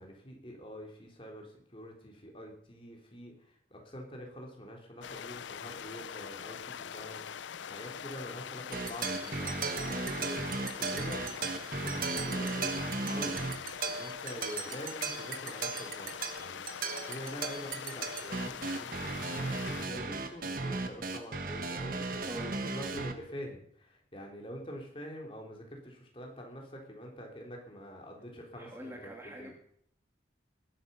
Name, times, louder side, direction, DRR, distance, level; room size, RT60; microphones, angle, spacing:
voice 1, 0.0-29.5, equal, 30° left, 0 dB, 3.5 m, -46 dB
sound 1, 5.0-19.9, left 7 dB, 80° left, 0.5 m, -43 dB
sound 2, 8.7-23.1, right 3 dB, 50° right, 1.4 m, -36 dB
voice 2, 22.3-22.6 28.5-29.5, right 1 dB, 15° right, 1 dB, 2.0 m, -44 dB
19.0 x 12.0 x 5.6 m, 0.67 s
head